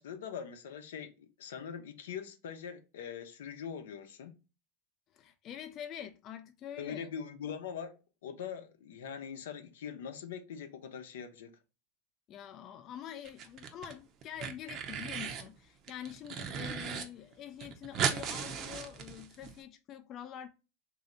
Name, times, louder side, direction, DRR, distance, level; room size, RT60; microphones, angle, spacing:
voice 1, 0.0-4.3 6.8-7.9 8.2-11.5, left 7 dB, 85° left, 0.7 m, -42 dB
voice 2, 5.1-7.1 12.3-20.5, left 10 dB, 40° left, 0.3 m, -45 dB
sound 1, 13.3-13.9 14.2-15.5 15.9-17.0 17.3-17.4 17.6-19.5, right 7 dB, 45° right, 0.6 m, -36 dB
3.2 x 2.7 x 3.8 m
supercardioid pair, 115°, 0 cm